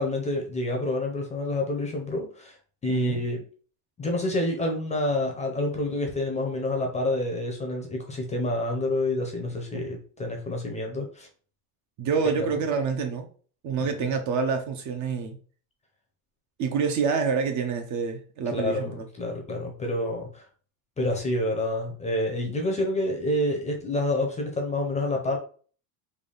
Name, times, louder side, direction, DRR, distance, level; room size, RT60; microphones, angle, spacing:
voice 1, 0.0-2.6 2.8-3.4 4.0-11.3 12.3-12.5 13.8-14.1 18.5-20.5 21.0-25.4, left 1 dB, 15° left, 0.6 m, -28 dB
voice 2, 2.9-3.2 12.0-13.3 13.6-15.4 16.6-19.0, right 5 dB, 40° right, 0.6 m, -27 dB
3.5 x 2.3 x 3.8 m
cardioid pair, 140°, 45 cm